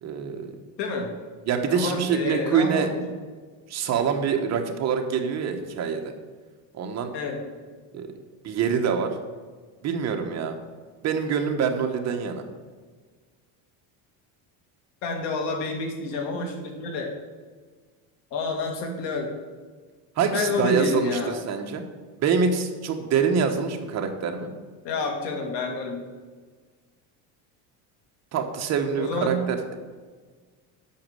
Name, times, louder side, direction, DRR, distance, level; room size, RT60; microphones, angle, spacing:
voice 1, 0.0-0.6 1.5-2.9 3.7-6.1 6.7-7.1 7.9-8.1 8.4-9.2 9.8-10.6 11.0-12.4 20.2-21.8 22.2-24.5 28.3-29.8, right 6 dB, 35° right, 5 dB, 1.1 m, -25 dB
voice 2, 0.8-1.1 1.7-3.1 7.1-7.4 15.0-17.1 18.3-19.3 20.3-21.4 24.8-26.0 29.0-29.4, left 3 dB, 75° left, 3 dB, 2.4 m, -29 dB
8.5 x 6.3 x 7.7 m, 1.5 s
cardioid pair, 165°, 43 cm